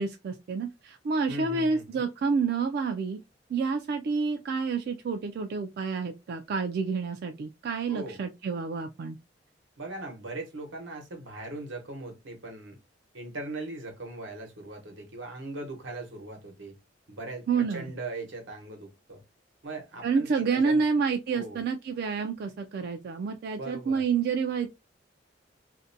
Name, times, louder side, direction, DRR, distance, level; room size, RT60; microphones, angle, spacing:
voice 1, 0.0-3.2 3.5-9.2 17.5-17.9 20.0-24.7, right 5 dB, 55° right, 0.3 m, -29 dB
voice 2, 1.3-2.1 7.9-8.2 9.8-12.8 13.1-16.8 17.1-19.2 19.6-20.9 21.3-21.6 23.6-24.0, right 2 dB, 90° right, 1.0 m, -39 dB
2.5 x 2.1 x 2.6 m
head